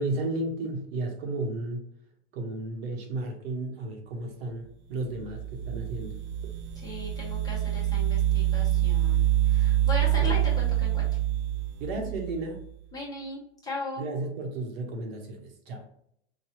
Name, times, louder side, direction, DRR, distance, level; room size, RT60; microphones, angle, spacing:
voice 1, 0.0-1.8 2.3-6.2 10.2-10.4 11.8-12.6 14.0-15.9, right 2 dB, 60° right, 2 dB, 1.0 m, -33 dB
sound 1, 5.1-12.6, right 13 dB, 40° right, 0.5 m, -26 dB
voice 2, 6.8-11.1 12.9-14.1, left 2 dB, 10° left, -5 dB, 0.8 m, -37 dB
4.7 x 2.3 x 2.9 m, 0.73 s
supercardioid pair, 155°, 35 cm